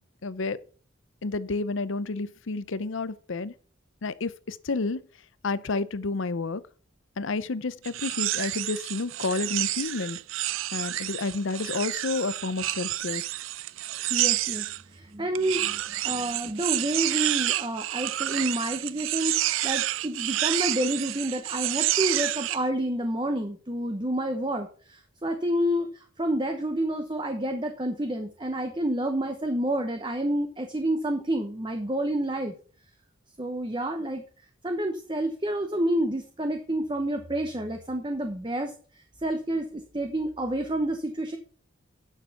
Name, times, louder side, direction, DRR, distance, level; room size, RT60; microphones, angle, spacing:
voice 1, 0.2-0.6 1.2-3.5 4.0-5.0 5.4-6.6 7.2-10.2 10.7-13.2, left 3 dB, 70° left, 0.6 m, -30 dB
sound 1, 7.8-14.8 15.3-22.6, right 15 dB, 75° right, 0.4 m, -29 dB
voice 2, 14.1-32.5 33.4-34.2 34.6-41.4, right 1 dB, 20° right, 0.9 m, -29 dB
9.9 x 6.7 x 5.8 m
head